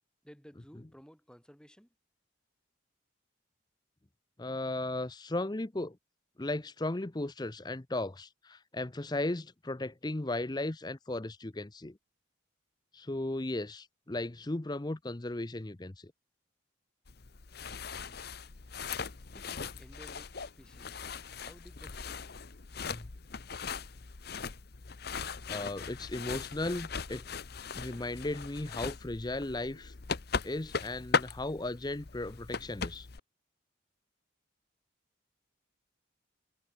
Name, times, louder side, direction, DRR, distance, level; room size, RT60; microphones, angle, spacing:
voice 1, 0.2-2.0 19.3-21.1 21.4-22.3, equal, 5° left, 5.2 m, -56 dB
voice 2, 4.4-6.0 6.4-12.0 12.9-16.1 22.9-23.1 25.0-27.2 27.7-29.9 30.4-33.1, left 2 dB, 20° left, 0.6 m, -36 dB
sound 1, 17.1-33.2, left 5 dB, 50° left, 0.9 m, -39 dB
head